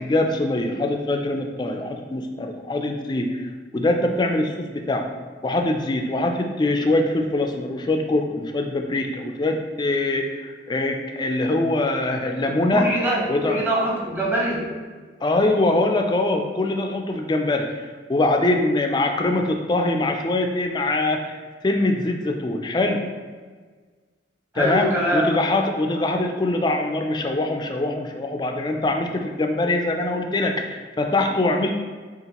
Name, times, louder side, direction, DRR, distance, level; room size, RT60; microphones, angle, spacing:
voice 1, 0.0-3.4 3.7-5.0 5.4-12.9 13.3-13.6 15.2-17.7 18.1-23.0 24.6-31.7, left 2 dB, 25° left, 4 dB, 0.3 m, -23 dB
voice 2, 12.7-14.7 24.5-25.3, right 1 dB, 10° right, -4 dB, 0.8 m, -23 dB
6.6 x 2.5 x 2.9 m, 1.5 s
head